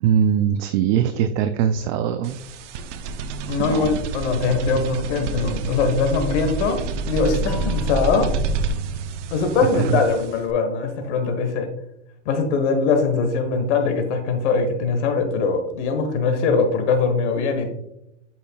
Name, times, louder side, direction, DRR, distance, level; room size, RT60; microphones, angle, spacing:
voice 1, 0.0-2.5 3.6-4.0 9.7-10.0, right 8 dB, 40° right, 9 dB, 0.4 m, -21 dB
sound 1, 2.2-10.5, right 4 dB, 80° right, 0.7 m, -28 dB
voice 2, 3.5-6.8 7.1-8.3 9.3-11.7 12.2-17.7, left 4 dB, 75° left, 6 dB, 1.3 m, -22 dB
sound 2, 7.5-10.4, left 4 dB, 5° left, 1.8 m, -42 dB
8.6 x 5.5 x 2.3 m, 0.83 s
supercardioid pair, 135°, 35 cm